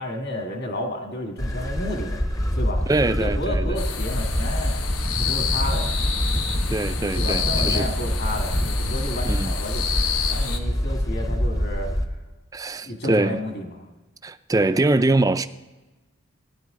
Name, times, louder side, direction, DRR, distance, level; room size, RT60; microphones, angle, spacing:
voice 1, 0.0-2.2 2.6-4.7 5.2-5.9 7.2-11.9 12.8-13.8, equal, 50° left, 1.8 m, -31 dB
sound 1, 1.4-12.0, equal, 15° left, 0.7 m, -25 dB
voice 2, 2.9-3.8 6.7-7.9 9.3-9.5 12.5-13.4 14.2-15.5, right 2 dB, 15° right, 0.4 m, -23 dB
sound 2, 3.8-10.6, left 7 dB, 80° left, 1.1 m, -29 dB
16.5 x 10.0 x 3.8 m
head